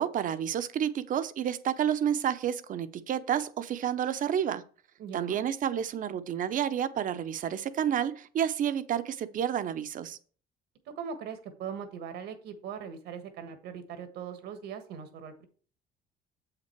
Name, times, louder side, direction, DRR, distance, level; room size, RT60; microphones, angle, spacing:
voice 1, 0.0-4.6 5.1-10.2, right 9 dB, 50° right, 0.7 m, -30 dB
voice 2, 5.0-5.4 11.0-15.4, right 7 dB, 80° right, 1.4 m, -40 dB
7.5 x 5.9 x 4.6 m
cardioid pair, 110°, 17 cm